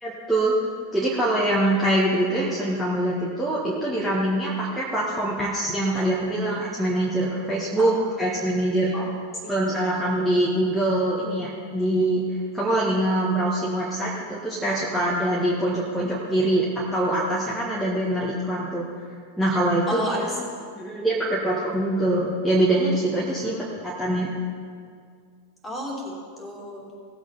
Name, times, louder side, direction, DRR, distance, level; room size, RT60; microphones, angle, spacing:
voice 1, 0.0-0.6 0.9-7.9 8.2-8.9 9.5-12.2 12.5-16.7 16.9-18.9 19.4-20.4 20.8-23.5 23.8-24.3, right 1 dB, 5° right, -8 dB, 1.8 m, -24 dB
voice 2, 7.8-8.2 8.9-9.1 9.4-9.5 16.0-16.1 19.9-20.3 23.4-23.7 25.6-26.9, equal, 15° left, -2 dB, 2.9 m, -33 dB
18.0 x 8.1 x 4.2 m, 2.1 s
figure-of-eight pair, 90°, 0 cm